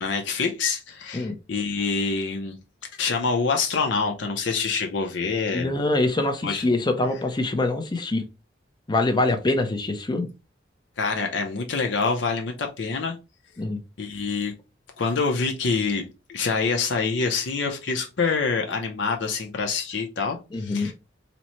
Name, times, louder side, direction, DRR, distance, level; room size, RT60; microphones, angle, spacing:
voice 1, 0.0-2.5 3.0-5.7 6.4-6.6 11.0-13.1 14.0-14.5 15.0-20.9, left 4 dB, 70° left, 0.6 m, -26 dB
voice 2, 5.5-8.2 8.9-10.3 13.6-13.8 20.5-20.9, left 2 dB, 25° left, 0.6 m, -24 dB
4.0 x 2.1 x 2.9 m
head